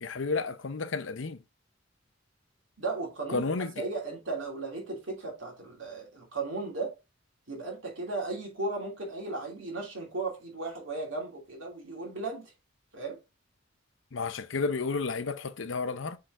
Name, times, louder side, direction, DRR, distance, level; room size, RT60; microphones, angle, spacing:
voice 1, 0.0-1.4 3.3-3.8 14.1-16.2, left 4 dB, 75° left, 0.7 m, -31 dB
voice 2, 2.8-3.5 3.8-6.9 7.5-12.5 12.9-13.2, right 3 dB, 75° right, 2.9 m, -36 dB
6.7 x 3.8 x 3.7 m
head